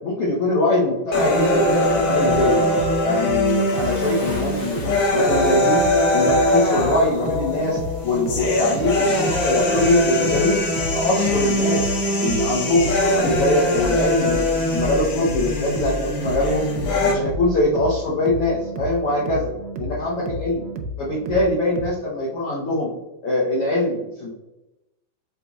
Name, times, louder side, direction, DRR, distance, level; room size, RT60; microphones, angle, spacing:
voice 1, 0.0-2.7 3.0-5.8 6.1-10.6 10.9-11.9 12.2-16.7 17.0-19.5 19.8-20.6 21.0-22.9 23.2-24.3, left 1 dB, 75° left, -5 dB, 1.3 m, -22 dB
sound 1, 1.1-17.1, left 1 dB, 90° left, 1.0 m, -22 dB
sound 2, 1.9-21.9, right 1 dB, 85° right, 2.1 m, -32 dB
Bathtub (filling or washing) / Splash splatter, 3.5-6.1 7.0-7.1 8.1-8.2, equal, 35° left, 1.6 m, -39 dB
5.5 x 4.0 x 2.4 m, 0.95 s
omnidirectional pair, 3.8 m